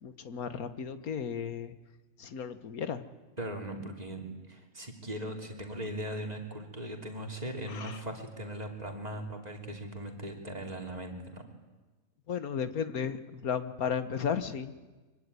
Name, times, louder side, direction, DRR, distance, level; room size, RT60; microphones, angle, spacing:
voice 1, 0.0-1.7 2.2-3.0 7.7-8.0 12.3-14.7, left 7 dB, 85° left, 12 dB, 1.8 m, -34 dB
voice 2, 3.4-11.5, right 1 dB, 25° right, 3 dB, 3.4 m, -39 dB
23.5 x 23.5 x 9.7 m, 1.3 s
omnidirectional pair, 1.5 m